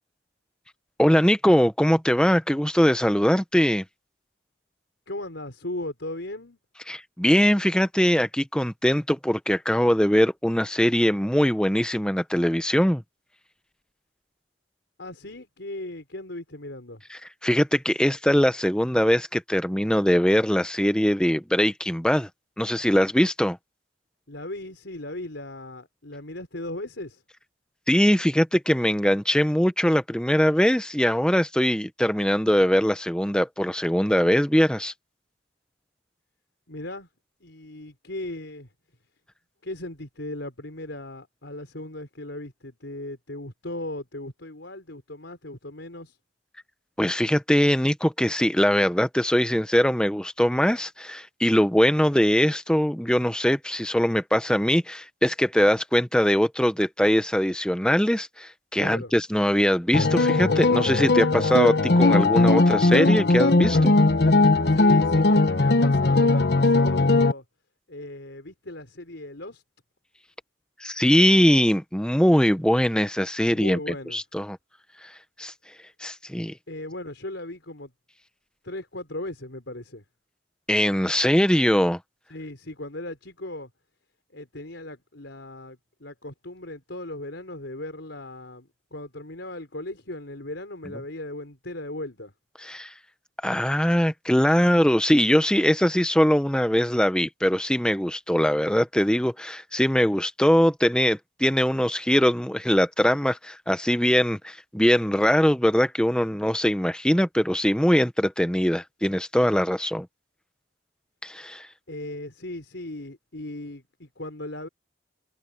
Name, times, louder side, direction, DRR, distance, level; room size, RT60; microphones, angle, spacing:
voice 1, 1.0-3.8 6.9-13.0 17.1-22.3 22.6-23.6 27.9-34.9 47.0-63.9 70.8-73.8 74.1-74.6 75.0-75.1 75.4-75.5 76.0-76.5 80.7-82.0 92.6-92.9 93.4-110.1 111.2-111.7, equal, 5° left, 0.9 m, -22 dB
voice 2, 5.1-6.6 15.0-17.0 24.3-27.2 36.7-37.1 37.4-38.7 39.6-46.2 58.8-59.1 64.7-67.4 67.9-69.6 73.5-74.2 76.7-77.9 78.6-80.0 82.3-83.7 84.3-92.3 111.9-114.7, left 1 dB, 75° left, 4.2 m, -37 dB
sound 1, 59.9-67.3, left 2 dB, 60° left, 1.0 m, -19 dB
head